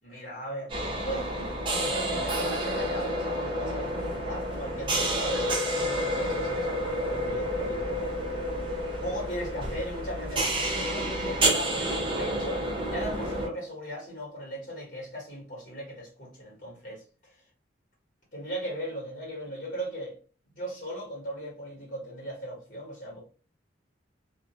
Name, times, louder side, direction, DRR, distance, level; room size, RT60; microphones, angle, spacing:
voice 1, 0.0-0.8 1.0-8.2 9.0-17.4 18.3-20.2 20.5-23.2, equal, 45° left, 1.2 m, -38 dB
sound 1, 0.7-13.5, right 1 dB, 25° right, 0.8 m, -29 dB
2.3 x 2.2 x 2.8 m
head